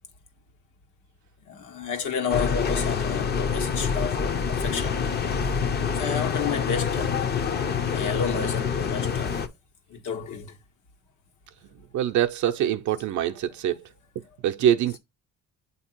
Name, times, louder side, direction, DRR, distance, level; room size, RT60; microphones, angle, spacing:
voice 1, 1.4-5.0 5.9-7.2 7.9-9.4 9.9-10.5, left 6 dB, 75° left, 1.5 m, -31 dB
sound 1, 2.3-9.5, left 6 dB, 30° left, 0.6 m, -26 dB
voice 2, 11.9-13.9 14.4-15.0, right 10 dB, 70° right, 0.6 m, -24 dB
7.9 x 2.8 x 4.5 m
cardioid pair, 135°, 31 cm